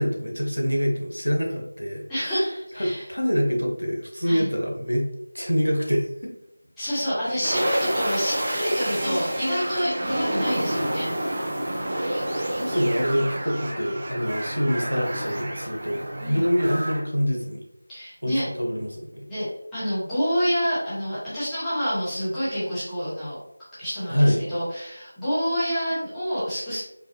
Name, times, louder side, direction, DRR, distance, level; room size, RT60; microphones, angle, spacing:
voice 1, 0.0-2.0 2.8-5.0 5.3-6.1 7.3-7.4 12.6-16.0 16.3-17.6 18.2-19.3 24.1-24.4, equal, 90° left, 0 dB, 1.1 m, -25 dB
voice 2, 2.1-3.0 4.2-4.5 6.8-11.4 16.2-16.4 17.9-18.4 19.3-19.5 19.7-23.4 23.8-26.8, equal, 5° left, -15 dB, 1.3 m, -27 dB
sound 1, 7.4-17.0, right 1 dB, 35° right, 0.8 m, -29 dB
sound 2, 11.4-16.4, right 1 dB, 85° right, 1.0 m, -44 dB
4.7 x 2.5 x 2.8 m, 0.80 s
figure-of-eight pair, 170°, 0 cm